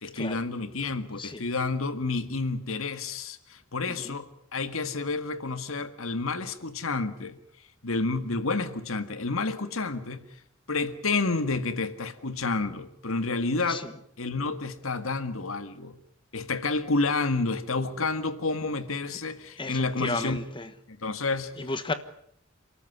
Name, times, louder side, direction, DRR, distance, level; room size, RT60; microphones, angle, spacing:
voice 1, 0.0-7.4 7.8-10.2 10.7-13.8 14.2-16.0 16.3-20.4 20.9-21.7, left 3 dB, 80° left, 1.8 m, -30 dB
voice 2, 3.8-4.1 13.7-13.9 19.6-20.7 21.6-21.9, left 2 dB, 25° left, 1.3 m, -33 dB
30.0 x 13.5 x 9.6 m
head